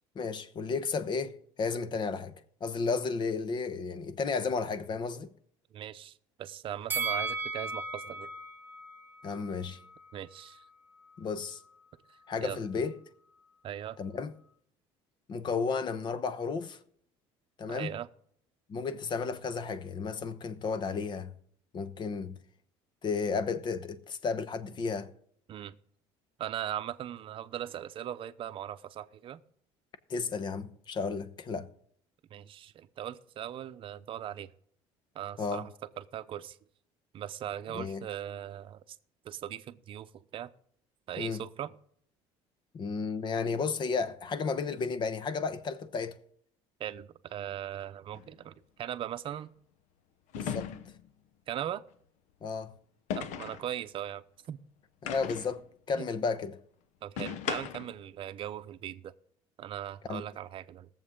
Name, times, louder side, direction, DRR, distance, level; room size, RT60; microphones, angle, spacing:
voice 1, 0.1-2.3 2.6-5.3 9.2-9.8 11.2-11.6 12.3-13.0 14.0-14.3 15.3-16.8 17.6-18.0 18.7-21.3 21.7-22.4 23.0-25.1 30.1-31.7 35.4-35.7 37.7-38.0 41.2-41.4 42.7-46.2 50.4-50.7 52.4-52.7 55.0-56.6 60.1-60.2, left 5 dB, 40° left, 1.0 m, -33 dB
voice 2, 5.7-8.3 10.1-10.6 12.4-12.6 13.6-14.0 17.7-18.1 25.5-25.7 26.4-29.4 32.3-34.5 35.1-36.6 37.1-39.0 39.2-40.5 41.1-41.8 46.8-49.5 51.5-51.8 53.2-54.6 56.0-56.1 57.0-59.1 59.6-60.9, right 11 dB, 50° right, 0.7 m, -39 dB
Bell, 6.9-10.1 10.4-10.6, right 3 dB, 15° right, 1.2 m, -36 dB
sound 1, 48.1-48.3 50.3-51.1 53.1-53.7 55.1-55.6 57.2-58.0, left 8 dB, 80° left, 1.0 m, -37 dB
20.0 x 7.3 x 3.8 m
cardioid pair, 110°, 12 cm